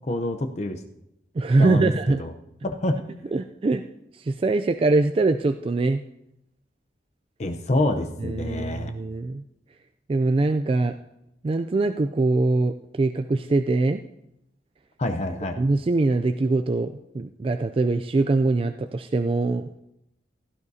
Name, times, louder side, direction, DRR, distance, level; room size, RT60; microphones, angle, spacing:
voice 1, 0.1-0.8 1.6-2.3 2.6-3.0 7.4-8.9 15.0-15.6, left 1 dB, 40° left, 5 dB, 0.7 m, -26 dB
voice 2, 1.4-2.2 3.3-3.8 4.1-6.0 8.2-9.4 10.1-10.9 11.4-14.0 15.6-19.7, right 3 dB, 30° right, 7 dB, 0.3 m, -23 dB
16.5 x 12.5 x 2.7 m, 0.86 s
head